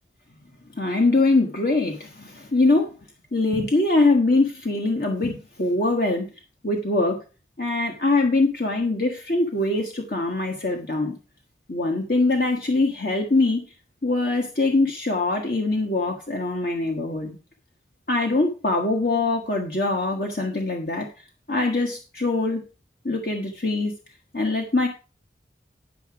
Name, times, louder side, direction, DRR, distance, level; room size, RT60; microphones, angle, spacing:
voice 1, 0.8-2.9 3.3-6.3 6.6-7.2 7.6-11.2 11.7-13.6 14.0-17.4 18.1-21.1 21.5-22.6 23.0-23.9 24.3-24.9, left 2 dB, 55° left, 2 dB, 1.3 m, -23 dB
10.5 x 6.0 x 4.7 m, 0.33 s
head